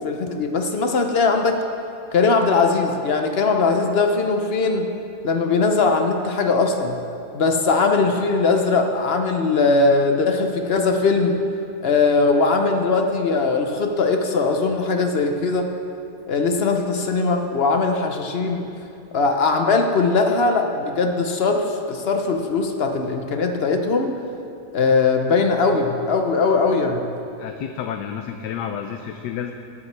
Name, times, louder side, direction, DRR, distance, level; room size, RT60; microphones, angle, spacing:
voice 1, 0.0-1.6 2.1-4.9 5.2-7.0 7.3-11.5 11.8-15.7 16.3-18.7 19.1-24.1 24.7-27.1, left 4 dB, 55° left, 4 dB, 0.7 m, -20 dB
voice 2, 27.4-29.5, left 8 dB, 85° left, 5 dB, 1.2 m, -30 dB
20.5 x 7.3 x 3.3 m, 2.7 s
omnidirectional pair, 1.7 m